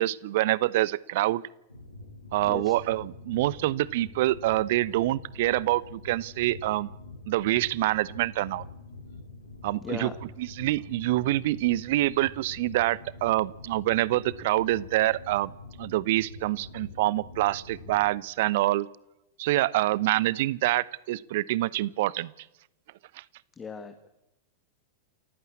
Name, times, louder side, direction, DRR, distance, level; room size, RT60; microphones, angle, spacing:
voice 1, 0.0-1.4 2.3-6.9 7.3-8.6 9.6-10.1 10.4-15.5 15.8-18.9 19.4-22.3 23.1-23.2, right 16 dB, 50° right, 21 dB, 0.9 m, -26 dB
sound 1, 1.7-18.1, left 3 dB, 85° left, 4.7 m, -45 dB
voice 2, 9.8-10.1 23.6-24.1, left 5 dB, 20° left, 6 dB, 2.0 m, -37 dB
28.5 x 15.0 x 8.5 m, 0.89 s
figure-of-eight pair, 90°, 0 cm